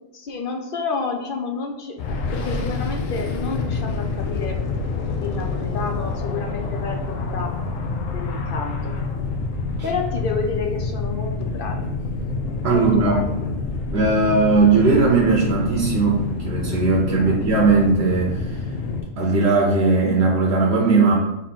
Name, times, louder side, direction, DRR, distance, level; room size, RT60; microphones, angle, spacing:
voice 1, 0.0-2.0 2.3-4.6 5.2-7.5 8.1-8.9 9.8-12.0 12.7-13.5 17.1-17.4, left 4 dB, 60° left, 2 dB, 0.5 m, -30 dB
sound 1, 2.0-19.0, left 3 dB, 80° left, 1.0 m, -27 dB
voice 2, 12.6-13.3 13.9-18.5 19.2-21.1, right 3 dB, 60° right, -2 dB, 0.9 m, -18 dB
4.0 x 2.9 x 4.3 m, 0.94 s
omnidirectional pair, 1.4 m